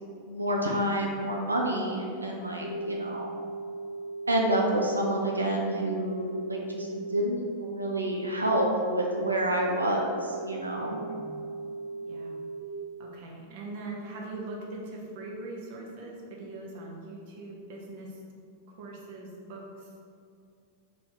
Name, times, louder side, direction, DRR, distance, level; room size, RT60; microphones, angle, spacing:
voice 1, 0.3-3.3 4.3-11.0, right 1 dB, 80° right, -1 dB, 0.4 m, -28 dB
sound 1, 2.6-12.6, right 3 dB, 85° left, 0.7 m, -38 dB
voice 2, 10.7-11.4 12.0-12.4 13.0-18.2 18.8-20.0, right 2 dB, 50° right, -2 dB, 0.8 m, -41 dB
3.3 x 2.7 x 4.3 m, 2.3 s
figure-of-eight pair, 90°, 0 cm